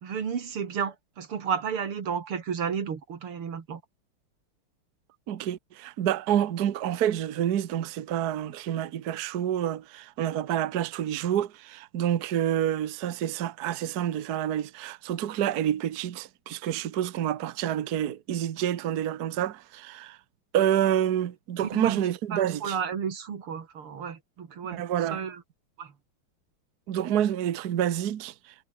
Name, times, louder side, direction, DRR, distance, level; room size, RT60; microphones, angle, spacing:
voice 1, 0.0-3.8 21.6-22.0 22.3-24.8 25.1-25.4 25.8-25.9, right 7 dB, 90° right, 3.2 m, -32 dB
voice 2, 5.3-20.2 20.5-22.8 24.7-25.2 26.9-28.3, right 10 dB, 55° right, 1.4 m, -28 dB
omnidirectional pair, 2.3 m